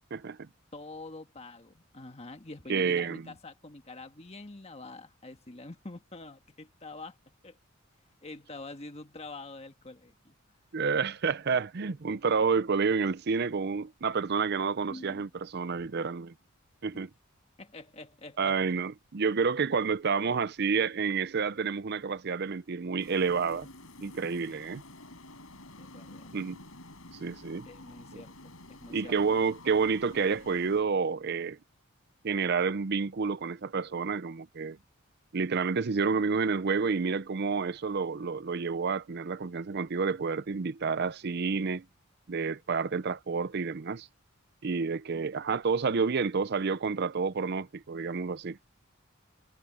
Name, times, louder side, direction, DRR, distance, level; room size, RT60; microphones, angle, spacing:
voice 1, 0.1-0.5 2.7-3.2 10.7-16.3 16.8-17.1 18.4-23.7 24.0-24.8 26.3-26.6 27.2-27.7 28.1-28.2 28.9-31.6 32.2-34.8 35.3-41.8 42.3-44.1 44.6-48.8, right 5 dB, 50° right, 0.6 m, -29 dB
voice 2, 0.7-7.2 7.4-7.6 8.2-10.4 14.9-15.3 15.7-15.9 16.9-17.0 17.6-18.6 25.8-26.4 27.7-29.4, left 2 dB, 30° left, 1.6 m, -46 dB
sound 1, 23.0-30.8, left 2 dB, 75° left, 7.3 m, -50 dB
head